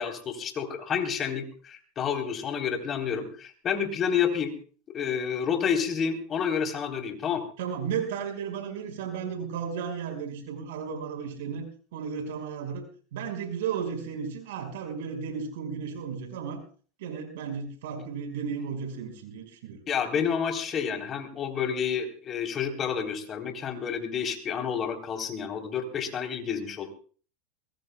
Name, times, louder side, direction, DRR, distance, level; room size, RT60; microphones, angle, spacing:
voice 1, 0.0-4.5 4.9-7.4 19.9-26.9, left 7 dB, 35° left, 4 dB, 3.8 m, -29 dB
voice 2, 7.6-11.7 11.9-16.6 17.0-19.8, right 6 dB, 80° right, 4 dB, 5.5 m, -34 dB
23.0 x 21.0 x 2.3 m, 0.41 s
supercardioid pair, 115°, 0 cm